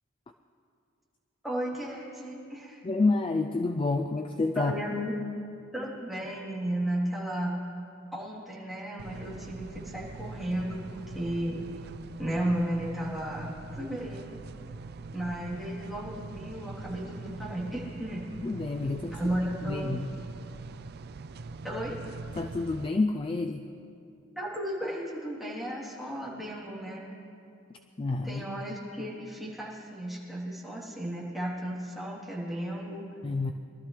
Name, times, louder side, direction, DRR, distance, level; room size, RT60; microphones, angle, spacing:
voice 1, 1.4-2.8 4.5-5.1 5.7-7.5 8.1-10.9 11.1-11.6 12.2-14.4 15.1-18.3 19.1-20.0 21.6-22.0 24.3-27.0 28.2-33.0, right 1 dB, ahead, -8 dB, 3.2 m, -34 dB
voice 2, 2.8-4.7 18.4-19.3 19.6-20.1 22.4-23.7 28.0-28.4 33.2-33.5, left 3 dB, 25° left, 6 dB, 0.4 m, -28 dB
sound 1, 9.0-22.9, right 3 dB, 50° right, 0.4 m, -42 dB
23.5 x 13.0 x 3.3 m, 2.6 s
head